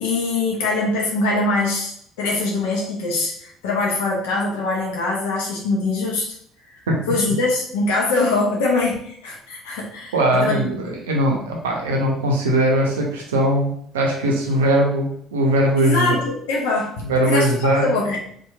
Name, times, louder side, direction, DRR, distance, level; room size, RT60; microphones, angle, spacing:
voice 1, 0.0-6.3 7.1-10.8 15.8-18.2, left 2 dB, 75° left, -1 dB, 0.5 m, -23 dB
voice 2, 10.1-16.2 17.0-17.9, right 1 dB, 85° right, 0 dB, 0.5 m, -20 dB
2.9 x 2.2 x 2.2 m, 0.64 s
hypercardioid pair, 60°, 0 cm